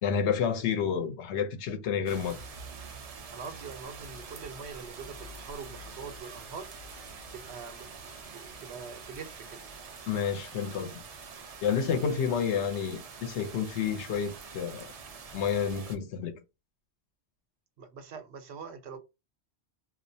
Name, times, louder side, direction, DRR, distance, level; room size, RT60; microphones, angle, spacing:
voice 1, 0.0-2.4 10.1-11.0 11.6-14.9 15.3-16.3, left 7 dB, 85° left, 0.9 m, -30 dB
sound 1, 2.1-16.0, right 4 dB, 55° right, 0.4 m, -46 dB
voice 2, 3.3-6.7 7.3-9.7 17.8-19.0, right 5 dB, 75° right, 0.9 m, -44 dB
2.4 x 2.1 x 2.6 m
omnidirectional pair, 1.1 m